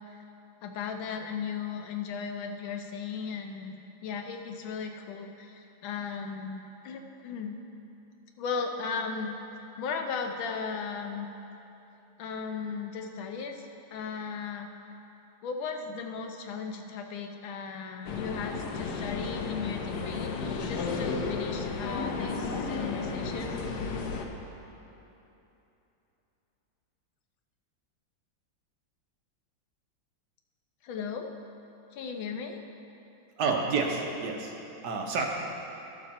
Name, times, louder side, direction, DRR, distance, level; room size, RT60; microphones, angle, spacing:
voice 1, 0.6-3.7 4.0-7.6 8.4-9.3 9.8-11.3 12.2-14.7 15.4-23.6 30.8-31.3 31.9-32.6, left 5 dB, 85° left, 4 dB, 1.6 m, -36 dB
sound 1, 18.0-24.2, left 4 dB, 65° left, 1.1 m, -33 dB
voice 2, 33.4-34.5 34.8-35.2, right 4 dB, 60° right, 0 dB, 1.4 m, -29 dB
12.5 x 6.4 x 4.3 m, 3.0 s
omnidirectional pair, 2.1 m